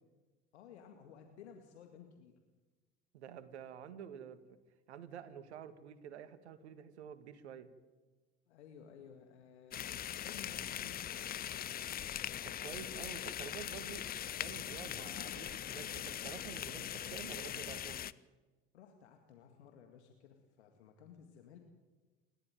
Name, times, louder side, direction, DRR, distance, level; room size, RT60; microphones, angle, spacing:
voice 1, 0.5-2.4 8.5-11.0 18.7-21.6, left 7 dB, 70° left, 4 dB, 2.1 m, -56 dB
voice 2, 3.1-4.4 4.9-7.7 12.4-14.1 14.3-18.1, right 8 dB, 70° right, 13 dB, 1.8 m, -49 dB
sound 1, 9.7-18.1, left 11 dB, 25° left, 0.6 m, -41 dB
28.5 x 13.0 x 9.2 m, 1.3 s
figure-of-eight pair, 65°, 35 cm